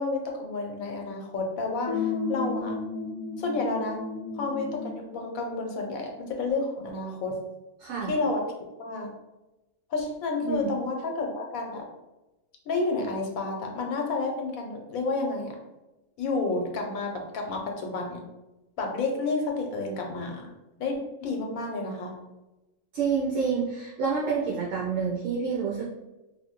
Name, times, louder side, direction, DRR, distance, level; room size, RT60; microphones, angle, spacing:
voice 1, 0.0-2.7 3.4-4.0 4.4-7.4 8.1-8.4 8.8-9.1 9.9-11.9 12.7-15.6 16.2-18.2 18.8-20.5 20.8-22.2, left 3 dB, 85° left, 2 dB, 1.1 m, -30 dB
sound 1, 1.9-5.0, left 4 dB, 25° left, 0.4 m, -32 dB
voice 2, 7.8-8.1 10.4-10.7 22.9-25.8, right 5 dB, 65° right, -5 dB, 1.0 m, -28 dB
2.7 x 2.5 x 2.8 m, 1.0 s
omnidirectional pair, 1.5 m